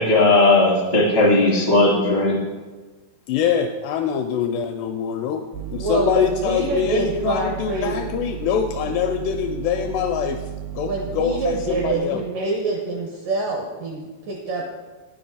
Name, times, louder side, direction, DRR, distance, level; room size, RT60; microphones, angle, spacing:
voice 1, 0.0-2.4, left 2 dB, 55° right, -6 dB, 0.6 m, -16 dB
voice 2, 3.3-5.4 5.7-10.4 10.7-12.2, left 8 dB, 85° left, 5 dB, 2.4 m, -24 dB
sound 1, 5.5-12.0, right 11 dB, 90° right, 2.3 m, -34 dB
voice 3, 5.7-8.0 10.8-14.6, right 2 dB, 75° right, 0 dB, 2.0 m, -26 dB
9.6 x 7.9 x 5.3 m, 1.3 s
omnidirectional pair, 5.3 m